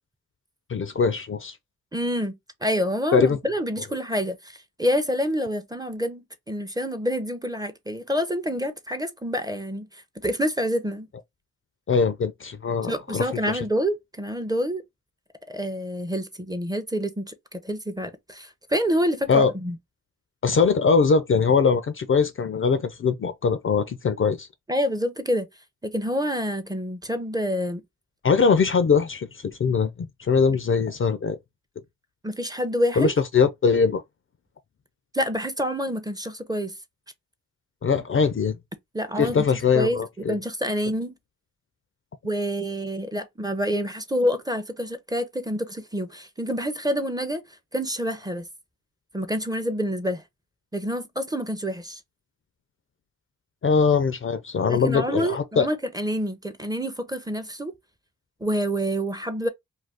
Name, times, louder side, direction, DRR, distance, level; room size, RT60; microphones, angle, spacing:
voice 1, 0.7-1.6 3.1-3.4 11.9-13.6 19.3-19.5 20.4-24.5 28.2-31.4 33.0-34.0 37.8-38.6 39.2-40.4 53.6-55.7, left 5 dB, 40° left, 0.4 m, -22 dB
voice 2, 1.9-11.1 12.9-14.8 15.5-19.8 24.7-25.5 25.8-27.8 32.2-33.1 35.1-36.7 38.9-39.4 39.7-41.1 42.2-47.4 47.7-48.5 49.1-50.2 50.7-52.0 54.7-57.7 58.4-59.5, equal, 10° right, 0.6 m, -27 dB
2.5 x 2.3 x 3.4 m
cardioid pair, 55°, 32 cm